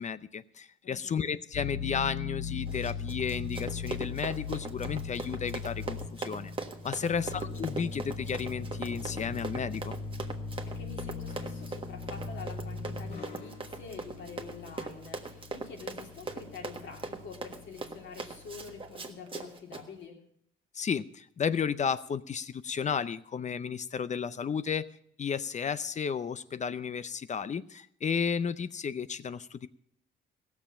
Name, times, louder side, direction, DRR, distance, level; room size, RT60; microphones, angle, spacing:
voice 1, 0.0-6.5 6.8-9.9 20.7-24.9 25.2-29.7, left 6 dB, 35° left, 16 dB, 0.6 m, -33 dB
voice 2, 0.8-1.2 6.9-7.3 10.7-20.2, left 5 dB, 70° left, 2 dB, 3.1 m, -46 dB
sound 1, 1.5-18.9, left 5 dB, 55° left, 2.8 m, -40 dB
Run, 2.7-19.8, right 3 dB, 25° right, 1.5 m, -41 dB
16.0 x 7.2 x 7.3 m, 0.68 s
cardioid pair, 90°, 20 cm